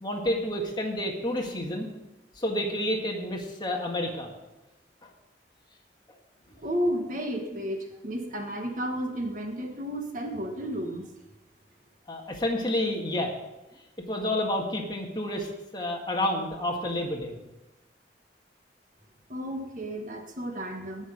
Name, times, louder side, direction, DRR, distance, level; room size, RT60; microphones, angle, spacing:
voice 1, 0.0-1.9 2.3-4.3 5.0-5.1 12.1-13.3 14.1-17.4, left 1 dB, 25° left, 1 dB, 1.7 m, -29 dB
voice 2, 6.6-11.1 19.3-21.1, equal, 45° right, 3 dB, 1.5 m, -32 dB
18.5 x 6.3 x 5.1 m, 1.0 s
head